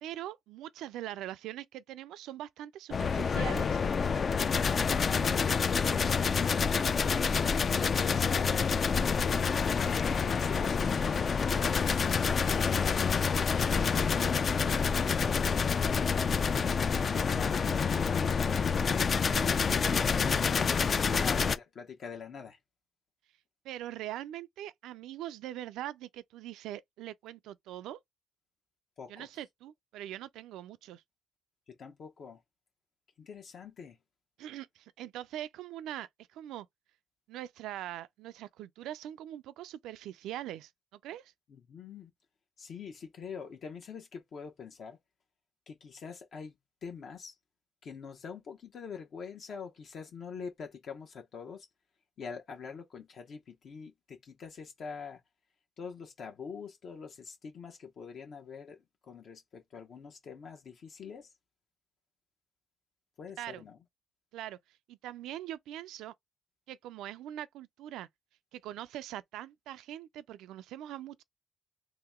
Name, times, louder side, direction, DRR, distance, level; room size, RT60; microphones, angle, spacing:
voice 1, 0.0-3.8 18.2-18.5 21.1-21.3 23.6-28.0 29.1-31.0 34.4-36.7 37.3-41.3 63.4-63.6 64.3-64.6 64.9-66.1 66.7-68.1 68.5-71.2, right 13 dB, 90° right, 0.3 m, -42 dB
sound 1, 2.9-21.6, left 6 dB, 45° left, 0.4 m, -28 dB
voice 2, 6.4-10.8 11.4-13.1 13.6-15.8 18.4-19.1 19.6-22.6 29.0-29.3 31.7-32.4 33.2-34.0 41.5-42.1 42.6-45.0 45.7-46.5 46.8-47.4 47.8-51.7 52.2-55.2 55.8-61.3 63.2-63.8, left 6 dB, 60° left, 0.9 m, -45 dB
3.0 x 2.9 x 3.5 m
cardioid pair, 90°, 0 cm